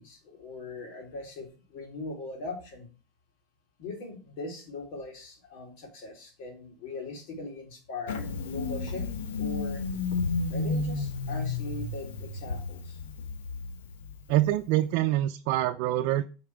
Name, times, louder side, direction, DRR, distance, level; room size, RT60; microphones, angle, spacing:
voice 1, 0.0-2.9 3.8-9.1 9.3-9.8 10.5-13.0, left 2 dB, 65° left, 2 dB, 3.3 m, -40 dB
Engine starting, 8.1-14.6, left 4 dB, 90° left, 1.3 m, -32 dB
voice 2, 14.3-16.2, right 14 dB, 60° right, 5 dB, 0.6 m, -25 dB
8.7 x 4.7 x 4.7 m, 0.35 s
supercardioid pair, 120°, 0 cm